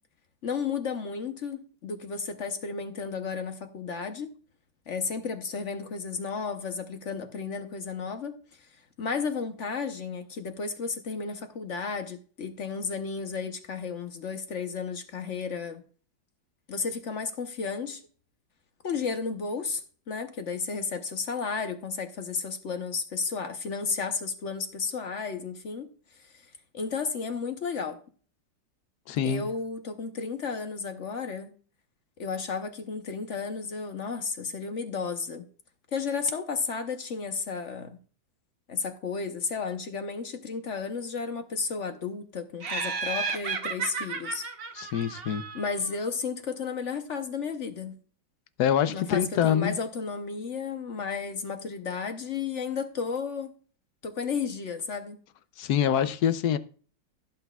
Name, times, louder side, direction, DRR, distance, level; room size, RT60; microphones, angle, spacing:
voice 1, 0.4-4.3 4.9-8.7 9.0-15.8 16.7-18.0 18.8-19.8 20.1-25.9 26.3-26.4 26.7-28.0 29.2-31.5 32.2-35.4 35.9-38.0 38.7-44.5 45.5-48.0 48.9-53.5 54.0-55.2, left 5 dB, 50° left, 1.0 m, -33 dB
voice 2, 29.1-29.5 44.7-45.5 48.6-49.8 55.6-56.6, left 9 dB, 70° left, 1.1 m, -25 dB
Laughter, 42.6-45.9, right 5 dB, 45° right, 0.9 m, -33 dB
15.5 x 8.0 x 2.3 m
omnidirectional pair, 2.0 m